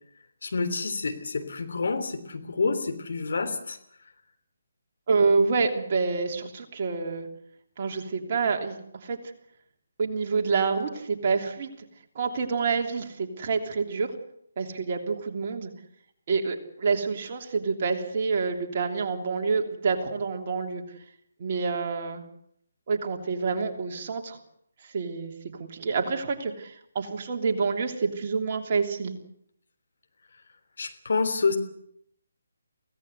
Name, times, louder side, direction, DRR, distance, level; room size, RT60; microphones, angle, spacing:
voice 1, 0.4-3.8 30.8-31.6, left 4 dB, 60° left, 8 dB, 3.3 m, -28 dB
voice 2, 5.1-7.3 7.8-9.2 10.0-11.7 12.1-14.1 14.6-15.7 16.3-20.8 21.4-22.2 22.9-24.4 24.8-25.3 25.6-29.2, right 4 dB, 40° right, 3 dB, 3.2 m, -27 dB
23.5 x 17.0 x 8.1 m, 0.70 s
figure-of-eight pair, 145°, 0 cm